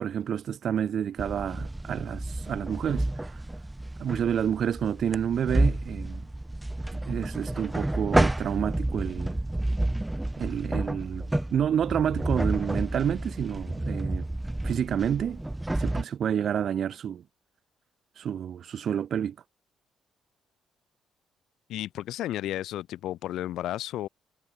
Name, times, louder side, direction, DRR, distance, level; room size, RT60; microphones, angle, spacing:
voice 1, 0.0-3.0 4.0-6.3 6.9-9.4 10.4-14.3 14.6-15.4 15.8-17.2 18.2-19.4, right 9 dB, 60° right, 1.8 m, -29 dB
sound 1, 1.2-16.0, right 1 dB, 10° right, 1.3 m, -30 dB
voice 2, 21.7-24.1, left 13 dB, 85° left, 3.2 m, -33 dB
cardioid pair, 90°, 0 cm